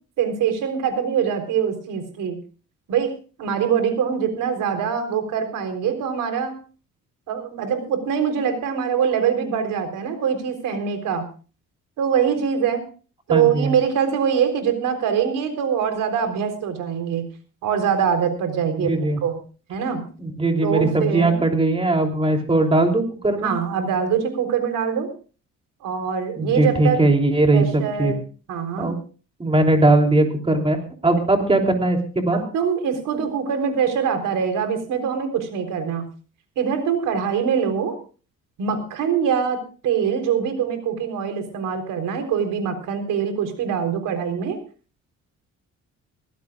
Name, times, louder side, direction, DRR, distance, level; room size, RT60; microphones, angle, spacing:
voice 1, 0.2-2.4 2.9-6.5 7.3-11.3 12.0-12.9 13.3-17.3 17.6-19.4 19.7-20.0 20.6-21.4 23.4-25.1 25.8-27.0 27.5-28.2 28.5-28.9 32.3-36.1 36.6-38.0 38.6-44.6, right 7 dB, 85° right, 6 dB, 3.8 m, -23 dB
voice 2, 13.3-13.7 18.8-19.2 20.2-23.5 26.4-28.1 28.8-28.9 29.4-32.4, right 2 dB, 15° right, 3 dB, 3.2 m, -19 dB
23.0 x 15.5 x 2.4 m, 0.37 s
cardioid pair, 125°, 31 cm